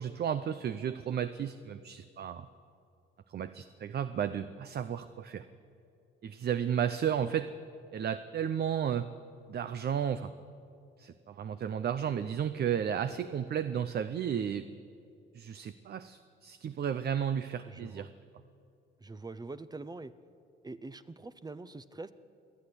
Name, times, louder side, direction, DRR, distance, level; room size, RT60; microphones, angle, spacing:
voice 1, 0.0-2.5 3.3-5.4 6.2-7.5 7.9-9.1 9.5-10.3 11.0-14.7 15.3-18.1, right 8 dB, 55° right, 11 dB, 0.8 m, -33 dB
voice 2, 17.7-18.1 19.0-20.1 20.6-22.1, right 3 dB, 20° right, 13 dB, 0.8 m, -44 dB
28.0 x 10.5 x 9.9 m, 2.5 s
cardioid pair, 90°, 20 cm